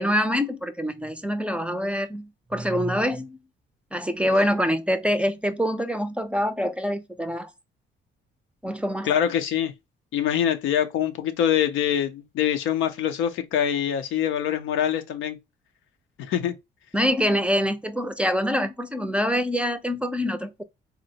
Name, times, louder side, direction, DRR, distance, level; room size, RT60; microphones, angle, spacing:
voice 1, 0.0-3.4 3.9-7.5 8.6-9.1 16.9-20.6, equal, 5° right, 0.4 m, -25 dB
voice 2, 9.0-9.7 10.1-15.4 16.2-16.5, left 9 dB, 90° left, 0.6 m, -24 dB
3.9 x 2.1 x 2.7 m
cardioid pair, 90°, 20 cm